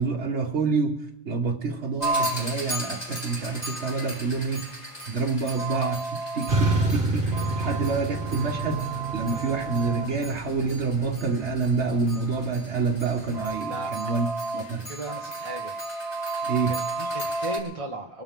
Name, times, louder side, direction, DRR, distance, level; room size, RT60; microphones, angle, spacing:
voice 1, 0.0-4.6 5.1-7.3 7.6-8.9 9.1-14.3 14.5-14.9 16.4-16.8, right 4 dB, 85° right, 1.5 m, -27 dB
sound 1, 2.0-17.6, right 2 dB, 35° left, 4.1 m, -33 dB
sound 2, 6.5-13.5, right 2 dB, 50° right, 2.5 m, -30 dB
voice 2, 13.6-14.1 14.9-15.7 16.7-18.2, right 2 dB, 30° right, 1.4 m, -36 dB
24.0 x 13.0 x 3.7 m
omnidirectional pair, 1.1 m